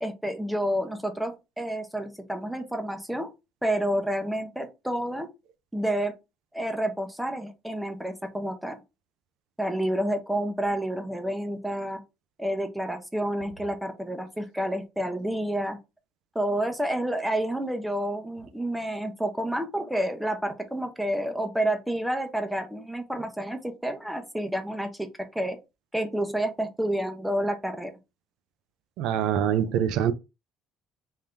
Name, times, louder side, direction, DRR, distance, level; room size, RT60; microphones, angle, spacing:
voice 1, 0.0-3.3 3.6-5.3 5.7-6.1 6.5-8.8 9.6-12.0 12.4-15.8 16.3-25.1 25.3-25.6 25.9-27.9, right 1 dB, 5° right, 0.7 m, -29 dB
voice 2, 29.0-30.1, right 9 dB, 75° right, 0.4 m, -24 dB
3.6 x 2.7 x 3.3 m
cardioid pair, 130°, 0 cm